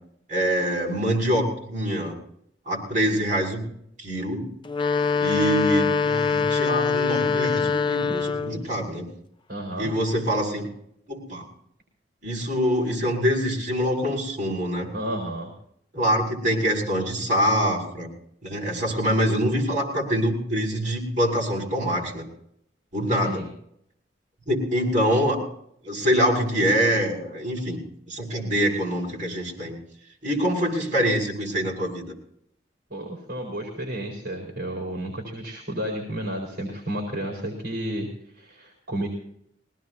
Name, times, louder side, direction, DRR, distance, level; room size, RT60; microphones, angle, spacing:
voice 1, 0.3-2.1 2.7-3.6 4.0-4.5 5.2-9.1 9.8-10.7 11.1-11.4 12.2-14.9 15.9-18.1 18.4-22.3 22.9-23.4 24.5-25.4 25.8-27.8 28.1-29.8 30.2-32.1, equal, 45° right, -2 dB, 7.0 m, -25 dB
sound 1, 4.6-8.7, left 5 dB, 25° left, 0.6 m, -23 dB
voice 2, 9.5-9.9 14.9-15.5 23.2-23.5 32.9-38.1 38.3-39.1, right 1 dB, 60° right, 0 dB, 4.6 m, -32 dB
22.0 x 18.5 x 2.8 m, 0.70 s
head